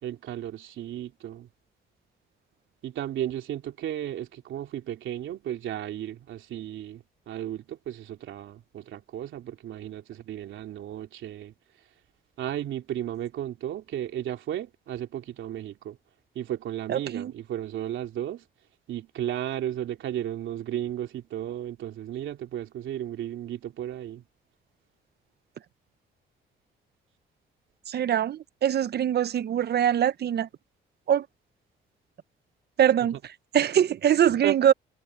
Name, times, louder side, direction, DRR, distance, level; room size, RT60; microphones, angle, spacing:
voice 1, 0.0-1.5 2.8-11.5 12.4-16.0 16.3-18.4 18.9-24.2 34.4-34.6, right 11 dB, 75° right, 3.1 m, -34 dB
voice 2, 16.9-17.3 27.9-30.5 31.1-31.3 32.8-33.2 33.5-34.7, right 10 dB, 55° right, 0.8 m, -23 dB
cardioid pair, 90°, 20 cm